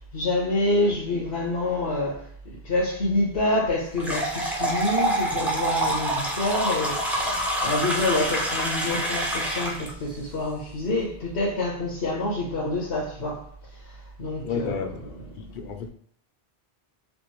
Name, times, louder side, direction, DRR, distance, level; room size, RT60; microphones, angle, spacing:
voice 1, 0.1-2.3 2.6-13.5 13.8-13.9 14.2-15.1, left 2 dB, 85° left, 1.2 m, -27 dB
sound 1, 4.0-9.9, right 1 dB, ahead, 0.6 m, -26 dB
voice 2, 14.4-15.9, left 6 dB, 60° left, 0.6 m, -33 dB
3.4 x 2.5 x 3.0 m
omnidirectional pair, 1.1 m